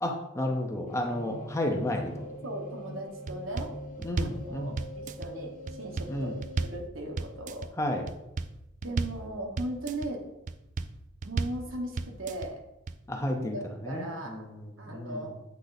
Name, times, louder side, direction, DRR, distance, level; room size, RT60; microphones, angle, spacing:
voice 1, 0.0-2.1 4.0-4.8 6.1-6.4 7.8-8.0 13.1-13.6 13.8-15.3, left 1 dB, 15° left, 2 dB, 0.7 m, -32 dB
sound 1, 0.9-6.7, equal, 45° left, 1.3 m, -42 dB
voice 2, 2.4-3.7 4.4-6.3 6.6-7.7 8.8-10.2 11.2-12.6 13.3-14.4 14.8-15.4, right 1 dB, 80° right, 2 dB, 1.3 m, -38 dB
sound 2, 3.3-3.7 4.0-4.4 4.8-5.3 5.7-6.1 6.4-6.8 7.2-7.7 8.1-8.5 8.8-9.2 9.6-10.1 10.5-10.9 11.2-11.6 12.0-12.5 12.9-13.0, right 4 dB, 40° right, 0.3 m, -33 dB
8.2 x 3.8 x 4.0 m, 0.93 s
head